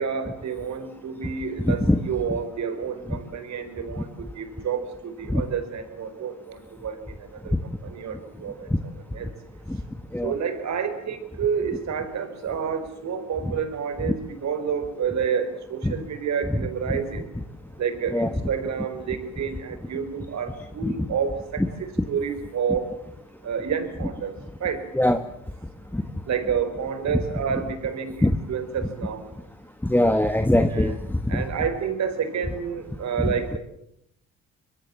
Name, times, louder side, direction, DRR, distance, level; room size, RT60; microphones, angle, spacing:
voice 1, 0.0-4.1 4.4-4.9 5.2-7.0 7.4-7.5 7.8-8.7 9.1-9.3 10.2-17.2 17.8-22.9 23.4-24.3 24.6-24.8 26.3-29.2 30.7-31.0 31.3-33.6, right 7 dB, 65° right, 10 dB, 4.4 m, -29 dB
voice 2, 1.6-2.0 3.1-3.2 5.3-5.4 8.7-8.8 9.7-9.8 10.1-10.3 15.8-15.9 16.9-17.0 18.1-18.3 20.8-20.9 24.9-25.2 25.9-26.0 28.2-28.4 29.8-31.4, left 1 dB, 5° left, 8 dB, 1.4 m, -22 dB
25.0 x 22.5 x 7.5 m, 0.76 s
cardioid pair, 90°, 30 cm